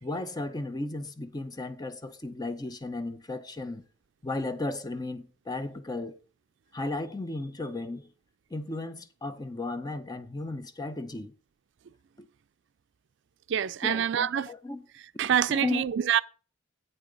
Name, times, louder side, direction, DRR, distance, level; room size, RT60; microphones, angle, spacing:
voice 1, 0.0-3.9 4.2-6.2 6.7-8.1 8.5-11.3 12.2-12.3 13.8-14.8 15.5-15.8, left 2 dB, 20° left, 0.8 m, -35 dB
voice 2, 13.5-14.5 15.2-16.2, right 9 dB, 65° right, 0.4 m, -26 dB
8.6 x 8.2 x 3.9 m
head